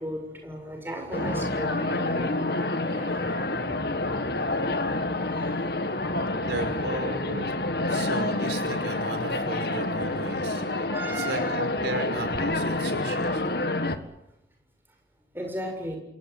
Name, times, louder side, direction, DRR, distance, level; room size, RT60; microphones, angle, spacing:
voice 1, 0.0-2.3 2.8-3.4 5.0-6.4 10.9-11.5 15.3-16.0, right 1 dB, 15° right, 7.1 m, -37 dB
sound 1, 1.1-14.0, left 2 dB, 65° left, 1.9 m, -28 dB
voice 2, 6.4-7.5 7.8-10.9 11.2-13.4, right 2 dB, 90° right, 5.6 m, -35 dB
27.5 x 18.0 x 9.5 m
head